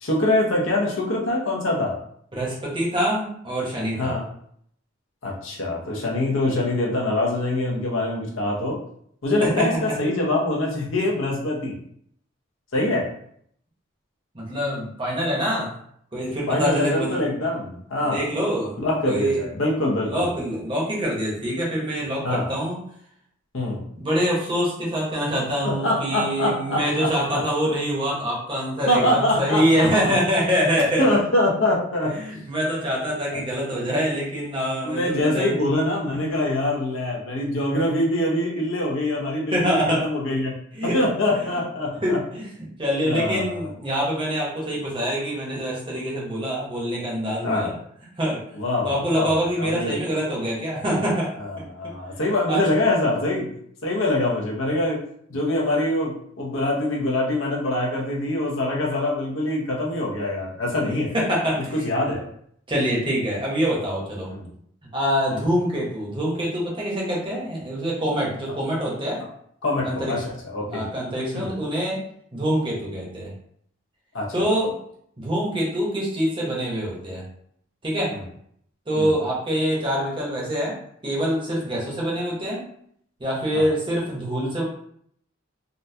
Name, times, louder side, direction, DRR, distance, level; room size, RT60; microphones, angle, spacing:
voice 1, 0.0-2.0 4.0-4.2 5.2-8.8 9.2-11.8 12.7-13.1 16.5-18.2 18.8-20.3 22.2-22.5 23.5-23.8 25.6-27.4 28.9-30.1 31.0-32.1 33.3-33.4 34.8-40.5 40.8-42.2 43.1-43.7 47.4-47.7 48.5-49.9 51.4-53.5 53.8-55.0 55.3-61.1 61.7-62.3 64.3-64.5 65.3-65.4 69.6-70.9 71.3-71.5 74.1-74.3 78.1-78.2 78.9-79.1 83.5-83.6, left 1 dB, 70° left, -2 dB, 0.8 m, -24 dB
voice 2, 2.3-4.1 9.4-9.7 14.3-15.8 16.1-17.2 18.1-18.8 19.1-19.4 20.0-22.8 24.0-31.2 32.1-35.6 39.5-40.0 40.7-41.1 41.5-41.6 42.0-47.7 48.2-48.4 48.8-51.3 52.5-52.6 60.9-61.9 62.7-64.3 64.9-69.2 69.8-70.1 70.7-72.0 72.3-73.3 74.3-74.7 75.2-77.2 77.8-78.1 78.9-80.7 81.0-82.6 83.2-84.6, equal, 25° right, -4 dB, 0.8 m, -25 dB
3.8 x 2.2 x 2.7 m, 0.67 s
head